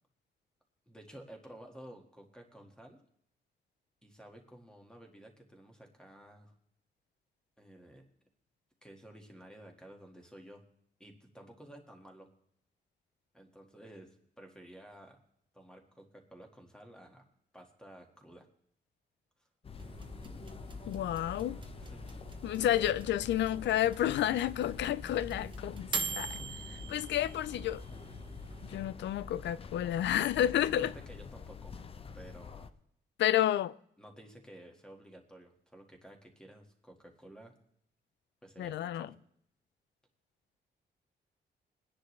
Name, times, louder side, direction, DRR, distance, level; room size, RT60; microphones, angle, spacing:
voice 1, 0.9-3.0 4.0-6.5 7.6-8.1 8.8-10.6 11.0-12.3 13.3-15.2 15.5-17.2 17.5-18.5 19.4-19.5 21.8-22.0 26.1-27.0 30.8-31.8 32.1-32.7 34.0-37.6 38.4-39.1, right 1 dB, 5° left, 1.8 m, -53 dB
sound 1, 19.6-32.7, left 5 dB, 30° left, 0.7 m, -46 dB
sound 2, 19.8-28.9, right 4 dB, 25° right, 1.0 m, -44 dB
voice 2, 20.9-21.6 22.4-26.4 26.9-27.8 28.6-30.9 33.2-33.8 38.6-39.1, left 12 dB, 90° left, 0.5 m, -30 dB
21.5 x 10.0 x 3.2 m
wide cardioid pair, 140°, 18 cm